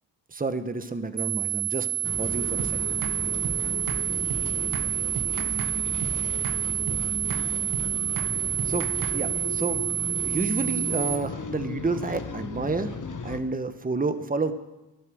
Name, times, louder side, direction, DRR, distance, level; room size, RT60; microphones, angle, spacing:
voice 1, 0.3-1.9 2.2-2.8 8.6-9.8 10.1-13.0 13.2-14.5, right 3 dB, 15° right, 10 dB, 1.1 m, -30 dB
sound 1, 1.2-11.2, right 13 dB, 40° right, 0.6 m, -28 dB
sound 2, 2.0-13.4, left 4 dB, 40° left, 1.3 m, -35 dB
sound 3, 2.6-2.7 3.0-3.2 3.4-3.6 3.9-4.0 4.3-4.4 4.7-4.9 5.2-5.7 6.0-6.2 6.4-6.6 6.9-7.0 7.3-7.5 7.7-7.9 8.2-8.3 8.6-9.2, right 7 dB, 85° right, 1.2 m, -34 dB
11.5 x 11.0 x 6.3 m, 1.0 s
supercardioid pair, 45°, 48 cm